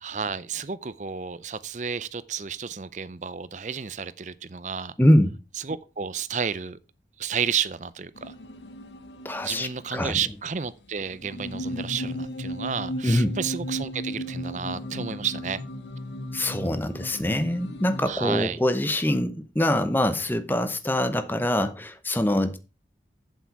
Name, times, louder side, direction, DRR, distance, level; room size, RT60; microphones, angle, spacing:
voice 1, 0.0-5.0 5.6-6.8 7.2-8.4 9.4-15.6 18.0-18.6, right 6 dB, 45° right, 0.5 m, -31 dB
voice 2, 5.0-5.4 9.2-10.2 13.0-13.4 16.3-22.6, left 1 dB, 10° left, 0.8 m, -24 dB
sound 1, 8.2-10.1 10.3-10.4 11.1-18.1, equal, 90° left, 1.1 m, -35 dB
8.4 x 7.7 x 4.7 m
head